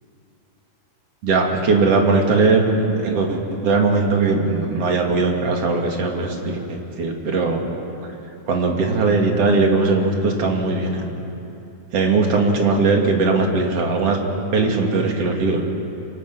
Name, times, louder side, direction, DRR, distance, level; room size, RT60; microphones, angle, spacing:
voice 1, 1.2-7.7 8.5-11.1 11.9-14.2 14.5-15.6, right 3 dB, 55° right, 1 dB, 3.5 m, -19 dB
26.5 x 24.5 x 6.2 m, 2.9 s
omnidirectional pair, 3.3 m